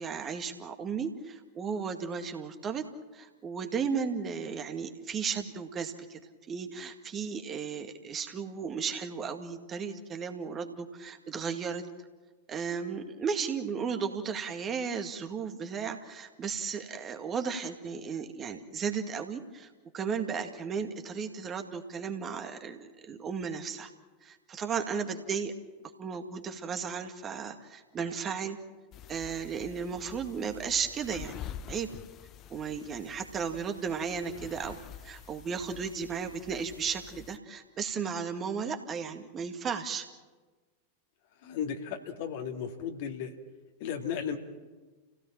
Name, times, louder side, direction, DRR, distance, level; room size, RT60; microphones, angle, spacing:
voice 1, 0.0-2.9 3.1-6.2 6.5-11.9 12.5-19.7 19.9-23.9 24.2-25.5 26.0-28.6 29.1-31.4 31.7-31.9 32.5-40.1, right 6 dB, 25° right, 5 dB, 2.1 m, -35 dB
sound 1, 28.9-37.4, left 9 dB, 35° left, 0.9 m, -47 dB
voice 2, 41.4-43.3 43.8-44.4, left 7 dB, 50° left, 4 dB, 2.4 m, -35 dB
29.5 x 17.0 x 7.5 m, 1.3 s
figure-of-eight pair, 90°, 0 cm